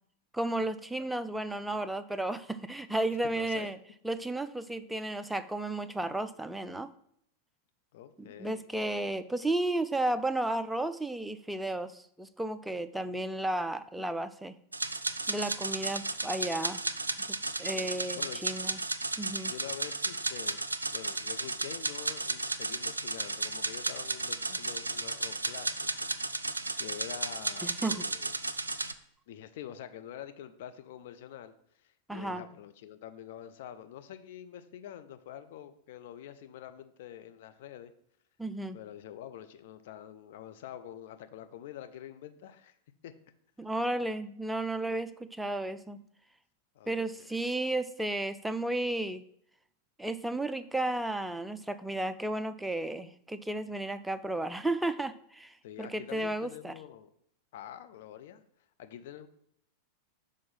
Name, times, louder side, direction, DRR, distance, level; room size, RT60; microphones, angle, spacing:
voice 1, 0.3-3.8 4.0-6.9 8.2-14.6 15.3-16.8 17.6-18.8 19.2-19.5 27.6-28.1 32.1-32.4 38.4-38.8 43.6-46.0 46.9-49.2 50.0-56.7, right 1 dB, 5° right, 11 dB, 0.4 m, -33 dB
voice 2, 3.2-3.7 7.9-8.7 17.7-18.4 19.4-26.1 26.4-26.5 26.8-28.4 29.3-31.5 31.8-37.9 38.7-42.7 43.0-43.1 46.7-47.3 55.6-57.1 57.5-58.4 58.8-59.3, left 10 dB, 55° left, 9 dB, 0.5 m, -46 dB
sound 1, 14.7-28.9, right 2 dB, 80° right, 0.4 m, -34 dB
6.1 x 3.7 x 5.3 m, 0.68 s
figure-of-eight pair, 90°, 0 cm